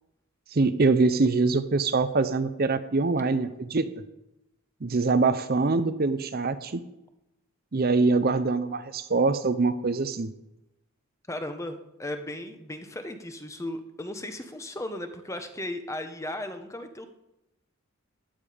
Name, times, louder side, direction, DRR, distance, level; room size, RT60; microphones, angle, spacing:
voice 1, 0.5-3.9 4.8-6.8 7.7-10.3, right 3 dB, 45° right, 12 dB, 0.6 m, -24 dB
voice 2, 11.3-17.1, left 1 dB, 15° left, 8 dB, 0.9 m, -36 dB
14.5 x 10.5 x 5.0 m, 0.91 s
head